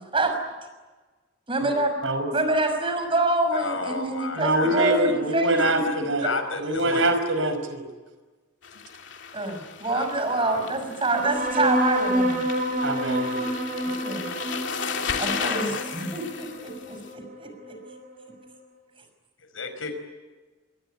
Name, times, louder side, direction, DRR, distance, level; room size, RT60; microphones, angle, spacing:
voice 1, 1.5-2.0 2.3-6.3 9.3-12.4 14.0-14.3 15.2-17.8, right 2 dB, 25° right, 6 dB, 6.1 m, -26 dB
voice 2, 3.5-5.1 5.6-7.1 9.9-10.6 19.5-19.9, left 3 dB, 85° left, 8 dB, 5.1 m, -33 dB
voice 3, 4.3-6.3 6.6-7.8 12.8-13.5, right 1 dB, 75° right, 9 dB, 5.2 m, -24 dB
sound 1, 8.6-17.1, left 6 dB, 65° left, 3.0 m, -35 dB
sound 2, 11.1-18.1, equal, 40° right, 5.5 m, -28 dB
26.5 x 22.0 x 9.9 m, 1.3 s
head